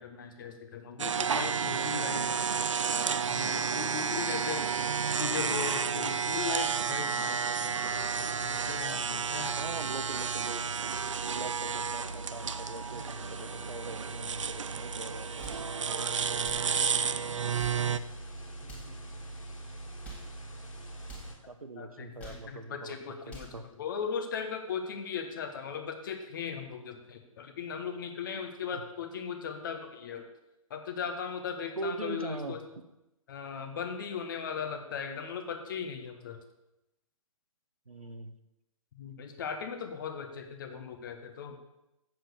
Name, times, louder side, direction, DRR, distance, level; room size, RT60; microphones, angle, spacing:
voice 1, 0.0-4.8 5.2-9.6 11.7-11.8 21.8-30.3 30.7-32.6 33.3-36.4 38.9-41.6, left 6 dB, 35° left, 6 dB, 1.3 m, -38 dB
sound 1, 1.0-18.0, right 6 dB, 60° right, 0.5 m, -31 dB
sound 2, 7.9-21.4, right 1 dB, 65° left, 2.4 m, -44 dB
voice 2, 9.4-10.6 11.2-15.5 18.6-19.2 21.5-23.0 23.3-23.7 28.7-28.8 31.8-32.9 37.9-38.3, right 2 dB, 80° right, 9 dB, 1.0 m, -42 dB
sound 3, 15.3-15.7 16.4-16.7 17.4-17.9 18.6-19.0 19.8-20.3 21.0-21.3 22.0-22.5 23.1-23.6, equal, 10° left, 2.1 m, -48 dB
7.6 x 7.5 x 6.8 m, 0.92 s
figure-of-eight pair, 135°, 18 cm